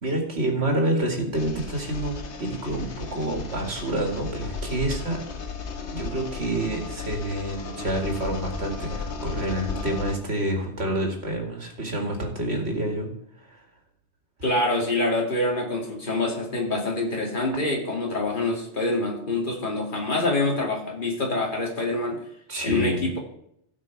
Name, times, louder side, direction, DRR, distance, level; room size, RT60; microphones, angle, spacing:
voice 1, 0.0-5.2 5.9-13.1 13.4-13.6 22.5-23.1, right 1 dB, 70° right, 2 dB, 2.4 m, -28 dB
sound 1, 1.3-10.2, left 4 dB, 80° left, 1.4 m, -34 dB
voice 2, 14.4-22.2 22.6-23.2, left 2 dB, 45° left, -1 dB, 2.5 m, -26 dB
16.5 x 5.7 x 4.6 m, 0.73 s
omnidirectional pair, 1.2 m